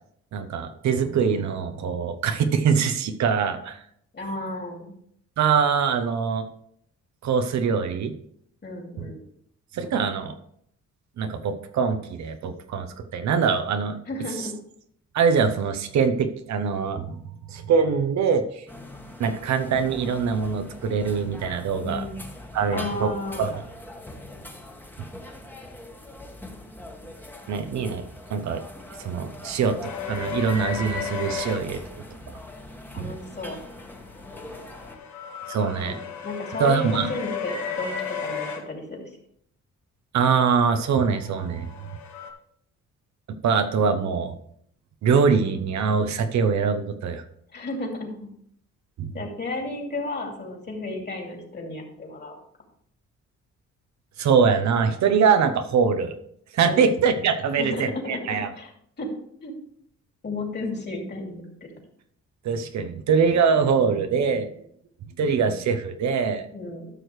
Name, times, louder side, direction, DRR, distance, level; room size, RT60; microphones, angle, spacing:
voice 1, 0.3-3.8 5.4-6.5 7.2-8.1 9.0-9.1 9.7-10.3 11.2-14.0 15.1-17.2 17.5-18.7 19.2-22.0 22.5-23.1 23.4-23.6 25.0-25.1 27.5-28.0 28.3-28.6 29.0-32.0 33.0-33.1 35.5-36.0 36.6-37.1 40.1-41.7 43.3-44.4 45.0-47.2 49.0-49.2 54.2-56.2 56.5-58.5 62.4-64.5 65.2-66.4, right 6 dB, 65° right, 8 dB, 0.8 m, -23 dB
voice 2, 4.1-4.9 8.6-9.2 14.1-14.6 21.8-22.2 22.7-23.5 32.9-33.6 35.8-36.0 36.2-39.1 47.5-48.3 49.1-52.4 56.6-56.9 57.6-58.2 58.5-58.7 59.0-59.1 59.4-59.5 60.2-61.7 66.5-66.9, left 2 dB, 35° left, 1 dB, 2.6 m, -33 dB
sound 1, 18.7-35.0, left 1 dB, 5° left, 1.3 m, -42 dB
sound 2, 29.8-31.6 34.0-38.6 41.0-42.3, left 6 dB, 70° left, 1.5 m, -34 dB
12.5 x 6.2 x 3.2 m, 0.69 s
cardioid pair, 90°, 30 cm